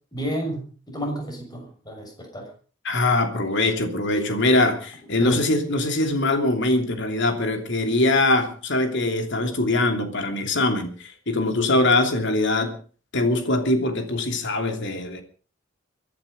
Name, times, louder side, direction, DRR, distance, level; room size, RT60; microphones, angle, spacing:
voice 1, 0.1-2.5 5.2-5.4, equal, 20° left, 1 dB, 6.7 m, -31 dB
voice 2, 2.8-12.8 13.1-15.2, left 2 dB, 60° left, 6 dB, 3.0 m, -22 dB
23.5 x 11.5 x 5.3 m, 0.39 s
head